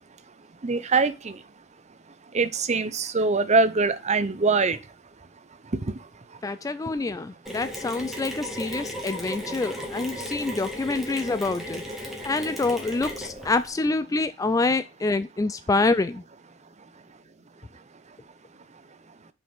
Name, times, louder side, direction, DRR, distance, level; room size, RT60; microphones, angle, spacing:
voice 1, 0.6-1.4 2.3-4.8, right 4 dB, 35° right, 0.7 m, -23 dB
voice 2, 6.4-11.8 12.2-16.2, left 3 dB, 15° left, 0.3 m, -26 dB
Mechanisms, 7.5-13.7, equal, ahead, 1.9 m, -36 dB
5.6 x 5.3 x 5.5 m
head